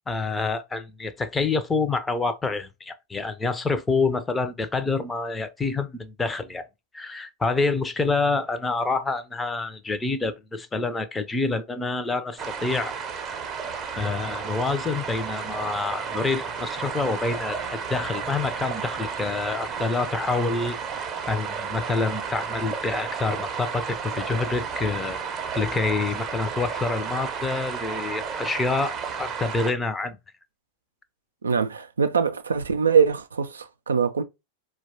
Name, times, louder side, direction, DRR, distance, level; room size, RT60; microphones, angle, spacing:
voice 1, 0.1-6.7 6.9-12.9 14.0-20.8 21.3-25.2 25.6-30.2, left 3 dB, 15° left, 0.5 m, -27 dB
sound 1, 12.4-29.7, right 6 dB, 25° right, 0.6 m, -32 dB
voice 2, 31.4-34.2, right 6 dB, 70° right, 0.4 m, -23 dB
4.4 x 2.2 x 2.8 m
figure-of-eight pair, 90°, 0 cm